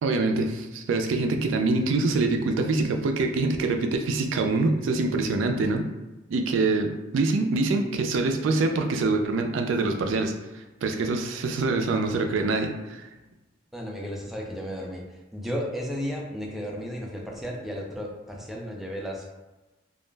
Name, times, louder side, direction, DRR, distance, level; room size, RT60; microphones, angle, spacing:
voice 1, 0.0-5.9 6.3-13.1, right 3 dB, 70° right, 5 dB, 0.3 m, -25 dB
voice 2, 13.7-19.3, equal, ahead, -2 dB, 0.4 m, -34 dB
2.3 x 2.0 x 3.2 m, 1.1 s
head